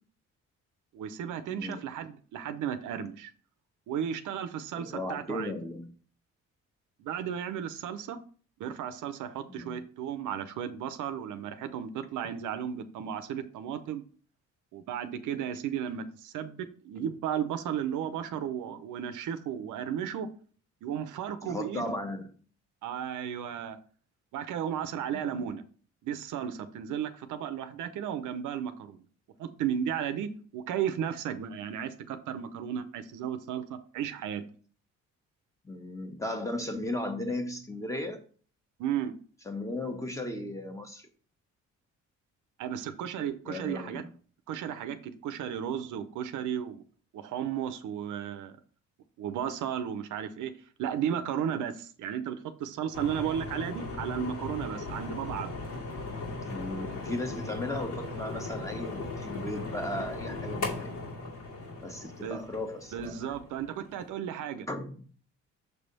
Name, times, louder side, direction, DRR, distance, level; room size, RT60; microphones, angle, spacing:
voice 1, 0.9-3.3 3.9-5.5 7.0-8.2 8.6-14.0 14.7-20.3 20.8-21.9 22.8-23.8 24.3-25.6 26.0-29.0 29.4-34.4 38.8-39.1 42.6-44.0 44.5-46.8 47.1-48.6 49.2-50.5 50.8-55.6 62.2-62.4 62.9-64.7, right 9 dB, 80° right, 10 dB, 0.7 m, -34 dB
voice 2, 1.5-1.8 4.8-5.9 9.5-9.8 21.4-22.3 25.1-25.4 35.6-38.2 39.4-41.1 43.4-44.1 56.4-60.9 61.8-63.3 64.7-65.0, left 1 dB, 10° left, 5 dB, 1.2 m, -36 dB
sound 1, 52.9-64.1, left 3 dB, 80° left, 2.5 m, -38 dB
6.7 x 3.4 x 5.3 m, 0.43 s
cardioid pair, 90°, 30 cm